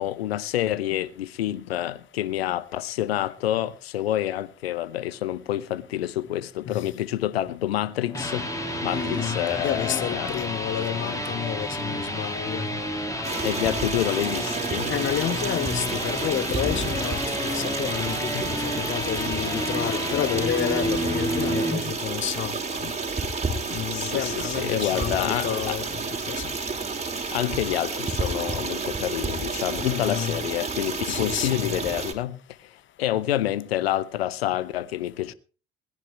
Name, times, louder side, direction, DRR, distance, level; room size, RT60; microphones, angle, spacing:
voice 1, 0.0-8.5 8.8-10.3 13.4-14.9 18.3-18.5 23.9-25.8 27.3-32.4 33.0-35.3, left 13 dB, 75° left, 0.7 m, -28 dB
sound 1, 8.0-21.8, equal, 10° left, 2.7 m, -30 dB
voice 2, 8.9-12.7 14.9-22.9 23.7-26.5 29.8-30.4 31.1-31.8, left 11 dB, 40° left, 0.8 m, -30 dB
Stream, 13.2-32.1, right 4 dB, 20° right, 2.7 m, -30 dB
20.5 x 17.0 x 3.1 m
figure-of-eight pair, 55°, 31 cm